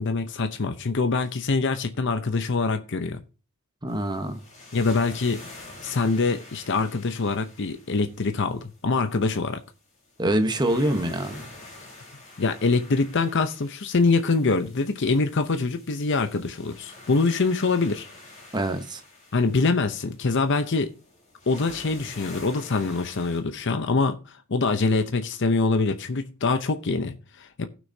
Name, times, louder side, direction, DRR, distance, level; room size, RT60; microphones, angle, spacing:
voice 1, 0.0-3.2 4.7-5.4 5.8-9.6 12.4-18.1 19.3-20.9 21.5-27.7, left 3 dB, 60° left, 0.7 m, -24 dB
voice 2, 3.8-4.4 10.2-11.5 18.5-19.0, right 1 dB, 20° right, 1.1 m, -25 dB
sound 1, 3.9-23.4, left 2 dB, 35° left, 4.3 m, -47 dB
17.5 x 6.2 x 2.7 m
head